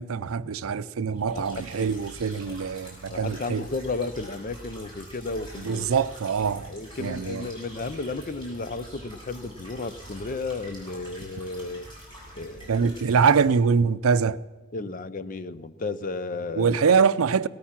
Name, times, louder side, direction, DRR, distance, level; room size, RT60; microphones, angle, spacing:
voice 1, 0.0-3.6 5.7-6.7 7.0-7.4 12.7-14.4 16.6-17.5, right 6 dB, 80° right, 0.5 m, -23 dB
voice 2, 1.2-1.9 2.3-2.6 3.1-5.9 6.4-11.9 12.4-13.0 14.7-16.9, left 3 dB, 40° left, 0.6 m, -34 dB
sound 1, 1.2-13.6, equal, 25° left, 6.0 m, -45 dB
17.5 x 13.0 x 5.9 m
head